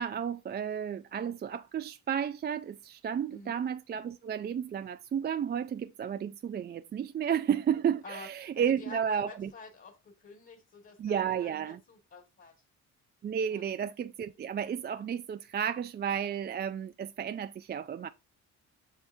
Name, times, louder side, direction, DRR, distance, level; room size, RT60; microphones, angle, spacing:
voice 1, 0.0-9.5 11.0-11.8 13.2-18.1, right 8 dB, 35° right, 0.4 m, -32 dB
voice 2, 3.3-3.6 8.0-12.5 13.5-13.6, left 3 dB, 40° left, 2.0 m, -49 dB
7.2 x 5.7 x 2.7 m
cardioid pair, 90°, 30 cm